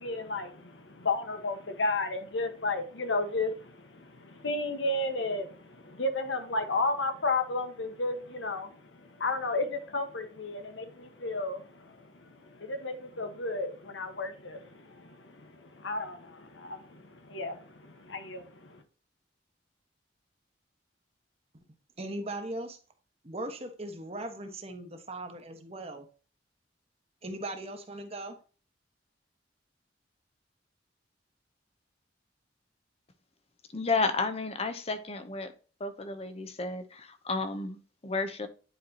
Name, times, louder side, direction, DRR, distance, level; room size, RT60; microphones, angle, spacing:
voice 1, 0.0-18.8, left 2 dB, 90° left, 7 dB, 1.3 m, -33 dB
voice 2, 22.0-22.8 23.2-26.1 27.2-28.4, right 1 dB, 35° right, 6 dB, 1.2 m, -39 dB
voice 3, 33.7-35.5 35.8-38.5, left 3 dB, 35° left, 10 dB, 0.8 m, -32 dB
10.0 x 4.6 x 2.8 m, 0.38 s
head